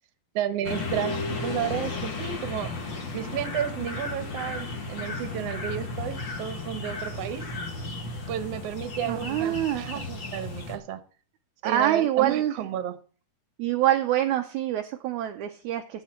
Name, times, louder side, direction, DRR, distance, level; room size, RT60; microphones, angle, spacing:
voice 1, 0.3-2.7 3.1-7.5 8.3-11.0 11.6-13.0, right 10 dB, 60° right, 10 dB, 1.9 m, -32 dB
sound 1, 0.6-10.8, left 3 dB, 45° left, 1.7 m, -34 dB
voice 2, 9.1-9.9 11.6-12.5 13.6-16.0, right 12 dB, 75° right, 5 dB, 1.9 m, -25 dB
16.0 x 7.3 x 4.4 m, 0.39 s
omnidirectional pair, 3.9 m